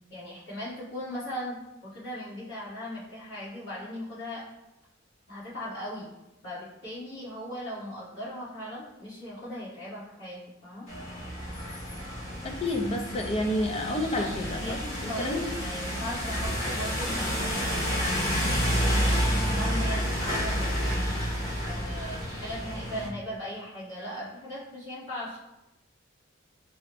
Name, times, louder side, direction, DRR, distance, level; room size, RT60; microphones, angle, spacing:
voice 1, 0.1-4.4 5.3-6.1 6.4-10.8 14.2-18.3 18.9-21.0 21.6-25.4, equal, 65° left, -10 dB, 1.3 m, -38 dB
sound 1, 10.9-23.1, equal, 85° left, 1.3 m, -29 dB
voice 2, 12.4-14.8 15.0-15.4, left 1 dB, 30° left, 3 dB, 0.4 m, -29 dB
4.7 x 2.0 x 2.9 m, 0.93 s
head